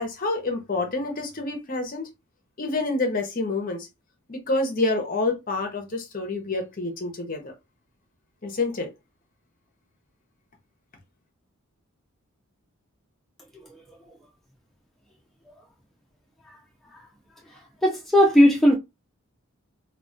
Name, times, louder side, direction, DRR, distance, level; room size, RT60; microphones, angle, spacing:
voice 1, 0.0-2.1 2.6-3.9 4.3-7.5 8.4-8.9, left 2 dB, 40° left, 0.6 m, -27 dB
voice 2, 17.8-18.8, equal, ahead, 0.3 m, -17 dB
2.2 x 2.1 x 3.8 m
head